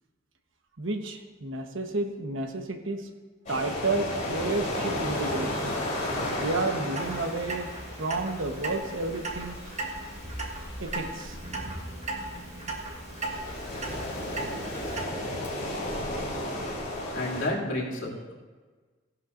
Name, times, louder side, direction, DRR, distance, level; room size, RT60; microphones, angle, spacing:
voice 1, 0.8-3.1 3.5-5.8 6.4-7.7 8.0-9.6 10.8-11.4, right 2 dB, 85° right, 5 dB, 1.2 m, -31 dB
sound 1, 3.5-17.5, left 1 dB, 40° left, 3.9 m, -34 dB
Clock, 7.0-15.0, right 2 dB, 35° right, 1.4 m, -37 dB
voice 2, 17.1-18.3, left 1 dB, 75° left, -4 dB, 2.6 m, -30 dB
16.5 x 11.0 x 2.6 m, 1.4 s
head